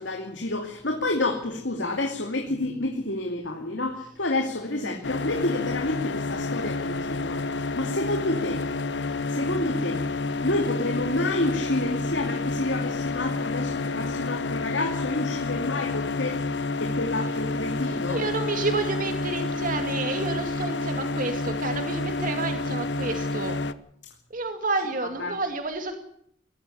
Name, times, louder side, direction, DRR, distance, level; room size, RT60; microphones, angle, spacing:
voice 1, 0.0-8.6 9.3-10.0 10.4-16.4 16.8-18.2 25.0-25.3, left 2 dB, 90° left, 3 dB, 2.6 m, -29 dB
sound 1, 5.0-23.7, left 3 dB, 70° left, 1.0 m, -29 dB
voice 2, 17.8-23.6 24.3-26.0, right 3 dB, 50° right, 6 dB, 2.3 m, -30 dB
20.0 x 14.5 x 10.0 m, 0.69 s
head